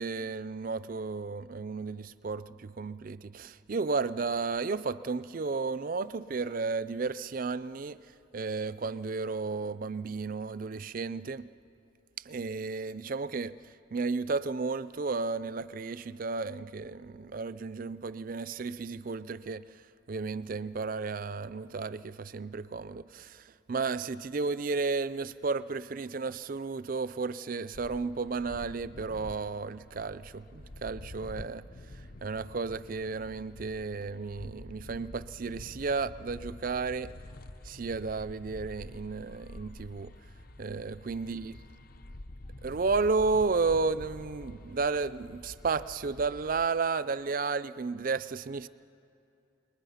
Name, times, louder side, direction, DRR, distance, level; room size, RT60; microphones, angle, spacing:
voice 1, 0.0-8.0 8.3-11.5 12.2-13.5 13.9-19.6 20.1-31.6 32.2-37.1 37.6-40.1 40.6-41.5 42.6-48.7, right 4 dB, 45° right, 16 dB, 0.4 m, -33 dB
sound 1, 27.7-46.7, left 1 dB, 50° left, 0.7 m, -48 dB
28.5 x 20.5 x 5.7 m, 2.6 s
head